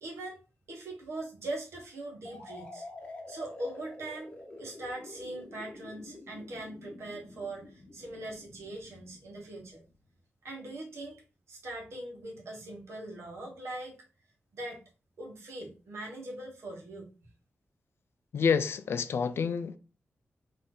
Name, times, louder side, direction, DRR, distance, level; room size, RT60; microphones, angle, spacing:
voice 1, 0.0-0.4 0.7-2.8 3.3-9.8 10.4-11.2 11.5-14.0 14.5-14.8 15.2-17.1, right 2 dB, 85° right, 1.5 m, -41 dB
sound 1, 2.2-9.9, left 2 dB, 25° left, 1.0 m, -48 dB
voice 2, 18.3-19.8, left 6 dB, 65° left, 0.4 m, -28 dB
4.0 x 3.2 x 3.9 m
wide cardioid pair, 170°, 4 cm